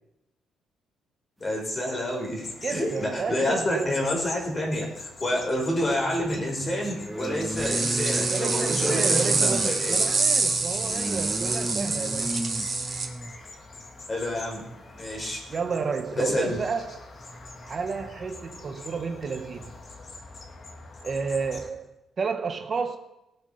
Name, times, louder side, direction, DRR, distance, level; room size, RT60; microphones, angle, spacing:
voice 1, 1.4-10.0 14.1-14.6 14.9-15.5 16.2-16.6, left 1 dB, 30° left, 0 dB, 5.1 m, -28 dB
sound 1, 2.4-21.7, left 3 dB, 45° left, 2.5 m, -43 dB
voice 2, 2.6-3.9 8.3-12.4 15.5-17.0 17.6-19.7 21.0-21.9 22.2-23.0, right 5 dB, 45° right, 6 dB, 1.3 m, -31 dB
sound 2, 3.5-3.6 5.8-13.4 14.6-14.8 15.1-15.3, right 1 dB, 5° right, 1.3 m, -34 dB
sound 3, 7.6-13.1, right 3 dB, 30° right, 3.2 m, -26 dB
19.0 x 7.8 x 5.8 m, 0.92 s
cardioid pair, 90°, 0 cm